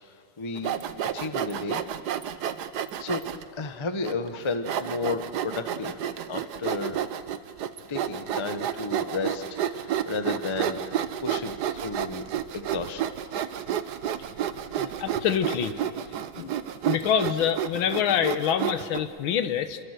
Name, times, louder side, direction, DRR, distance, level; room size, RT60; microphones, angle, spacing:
voice 1, 0.4-0.7 1.1-1.8 3.0-3.2 3.6-6.0 6.3-7.1 7.9-10.8 11.2-12.3 12.5-13.1 13.3-13.4, left 3 dB, 25° left, 8 dB, 0.6 m, -32 dB
Sawing, 0.6-3.4 4.0-4.1 4.7-19.0, right 10 dB, 60° right, 1.2 m, -30 dB
voice 2, 14.7-15.8 16.4-16.6 16.8-19.8, left 8 dB, 70° left, 10 dB, 1.7 m, -26 dB
28.5 x 23.0 x 6.7 m, 2.4 s
omnidirectional pair, 2.4 m